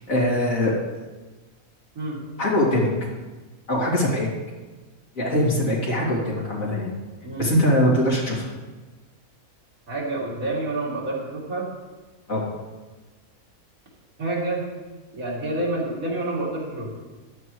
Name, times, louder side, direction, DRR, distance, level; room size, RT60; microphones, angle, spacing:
voice 1, 0.1-0.7 2.4-2.9 3.7-4.3 5.2-6.9 7.4-8.5 12.3-12.5, left 1 dB, 60° left, -5 dB, 3.2 m, -22 dB
voice 2, 9.9-11.7 14.2-14.7 15.1-16.9, right 2 dB, 65° right, -4 dB, 3.2 m, -28 dB
14.0 x 11.0 x 3.1 m, 1.2 s
omnidirectional pair, 1.6 m